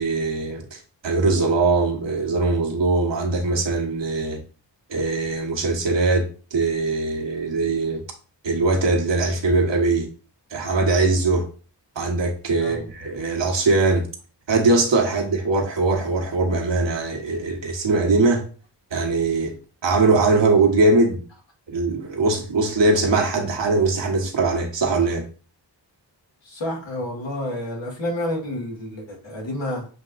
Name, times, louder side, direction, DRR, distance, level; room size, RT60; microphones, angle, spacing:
voice 1, 0.0-4.4 4.9-8.0 8.4-10.1 10.5-11.5 11.9-14.1 14.5-18.5 18.9-19.5 19.8-21.2 21.7-25.2, right 3 dB, 75° right, 1.3 m, -21 dB
voice 2, 26.4-29.9, left 1 dB, 85° left, 1.8 m, -29 dB
7.1 x 2.9 x 2.5 m
wide cardioid pair, 85°, 44 cm